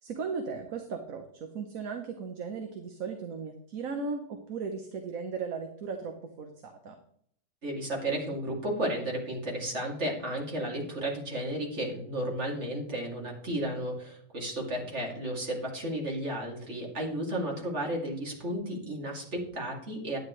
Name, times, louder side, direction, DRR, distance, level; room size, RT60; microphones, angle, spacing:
voice 1, 0.0-7.0, right 5 dB, 60° right, 5 dB, 1.3 m, -37 dB
voice 2, 7.6-20.2, right 1 dB, 45° right, -1 dB, 3.0 m, -33 dB
12.0 x 9.5 x 3.2 m, 0.65 s
omnidirectional pair, 1.7 m